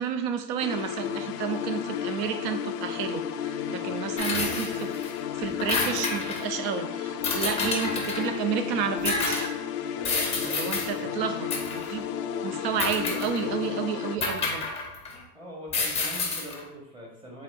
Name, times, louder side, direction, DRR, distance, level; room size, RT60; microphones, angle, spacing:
voice 1, 0.0-4.9 5.4-9.5 10.4-12.1 12.4-14.7, right 8 dB, 40° right, 8 dB, 0.5 m, -31 dB
sound 1, 0.6-14.2, left 9 dB, 80° left, 0.6 m, -33 dB
voice 2, 3.8-4.5 9.9-11.2 15.3-17.4, equal, 10° right, -3 dB, 1.1 m, -44 dB
sound 2, 4.2-5.1 5.4-6.5 7.2-8.3 9.0-9.5 10.0-10.9 11.5-11.9 12.8-13.5 14.2-15.2 15.7-16.6, left 3 dB, 15° left, 0.7 m, -29 dB
4.1 x 3.8 x 2.5 m, 0.75 s
hypercardioid pair, 120°, 47 cm